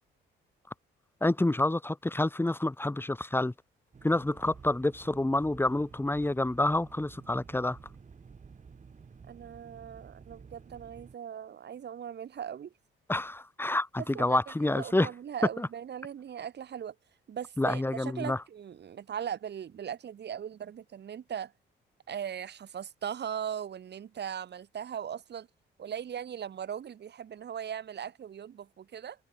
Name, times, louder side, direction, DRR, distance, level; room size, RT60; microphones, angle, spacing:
voice 1, 1.2-3.5 4.0-7.8 13.1-15.1 15.6-15.7 17.6-18.4, left 2 dB, 10° left, 3.1 m, -28 dB
sound 1, 3.9-11.1, right 5 dB, 40° right, 6.9 m, -52 dB
voice 2, 9.3-12.7 14.1-16.9 17.3-21.5 22.1-25.5 25.8-29.2, right 8 dB, 60° right, 7.5 m, -39 dB
cardioid pair, 90°, 20 cm